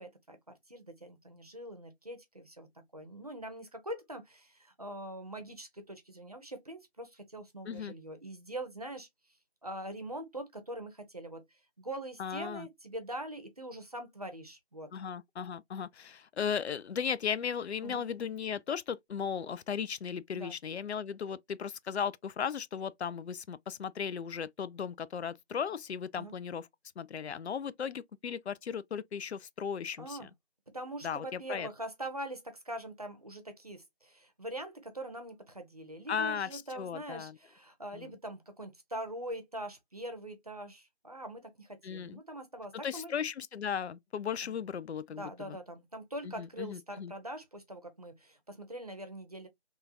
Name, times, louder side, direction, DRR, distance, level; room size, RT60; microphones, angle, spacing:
voice 1, 0.0-2.7 2.9-9.1 9.6-11.4 11.8-14.9 17.8-18.0 20.3-20.5 26.1-26.3 30.0-30.3 30.7-43.1 44.4-44.6 45.1-49.5, right 1 dB, 35° right, 0.6 m, -43 dB
voice 2, 12.2-12.7 14.9-26.7 27.0-30.3 31.0-31.7 36.1-37.3 37.9-38.1 41.8-42.2 42.8-45.6 46.2-47.1, left 7 dB, 90° left, 0.5 m, -36 dB
3.6 x 2.3 x 2.6 m
figure-of-eight pair, 170°, 32 cm